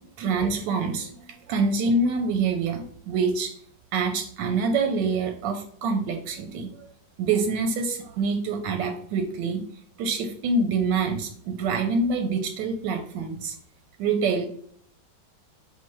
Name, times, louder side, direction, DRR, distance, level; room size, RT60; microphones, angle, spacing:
voice 1, 0.2-1.2 1.5-3.5 3.9-6.9 7.2-9.6 10.0-13.5 14.0-14.5, right 4 dB, 90° right, 5 dB, 1.3 m, -26 dB
3.8 x 2.5 x 4.4 m, 0.62 s
omnidirectional pair, 1.9 m